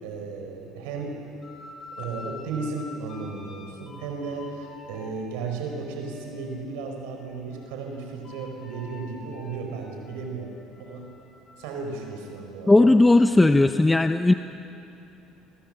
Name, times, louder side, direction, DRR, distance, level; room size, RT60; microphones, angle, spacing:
voice 1, 0.0-1.2 2.0-11.1 11.6-12.9, right 4 dB, 85° right, 2 dB, 4.5 m, -34 dB
sound 1, 1.4-6.7 7.1-12.4, left 3 dB, 30° left, 7.7 m, -47 dB
voice 2, 12.7-14.3, left 2 dB, 10° left, 8 dB, 0.7 m, -17 dB
28.0 x 23.0 x 7.6 m, 2.9 s
cardioid pair, 110°, 0 cm